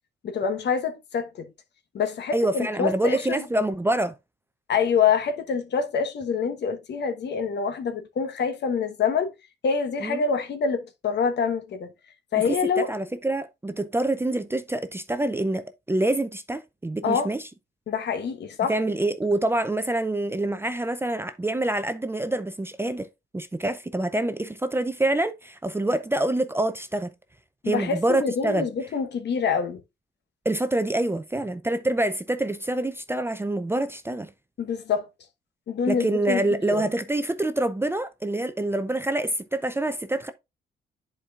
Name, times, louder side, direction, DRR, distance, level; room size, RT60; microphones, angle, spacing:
voice 1, 0.2-1.5 1.9-3.4 4.7-9.3 9.6-11.9 12.3-12.9 17.0-17.3 17.9-18.7 27.6-29.8 34.6-35.1 35.7-36.9, left 6 dB, 60° left, 1.2 m, -26 dB
voice 2, 2.3-4.1 10.0-10.2 12.4-17.4 18.7-23.1 23.3-27.1 27.7-28.7 30.5-34.3 35.9-40.3, right 1 dB, 10° right, 0.5 m, -26 dB
10.5 x 4.5 x 2.4 m
cardioid pair, 90°, 20 cm